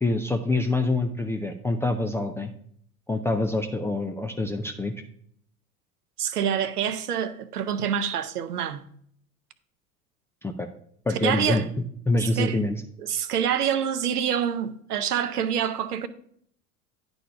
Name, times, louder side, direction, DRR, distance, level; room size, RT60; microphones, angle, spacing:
voice 1, 0.0-2.5 3.1-4.9 10.4-10.7 11.1-11.6 12.1-12.8, left 2 dB, 5° left, 0.3 m, -26 dB
voice 2, 6.2-8.8 11.2-11.6 12.2-12.6 13.0-16.1, right 8 dB, 80° right, 0.9 m, -26 dB
10.0 x 4.2 x 5.7 m
figure-of-eight pair, 80°, 45 cm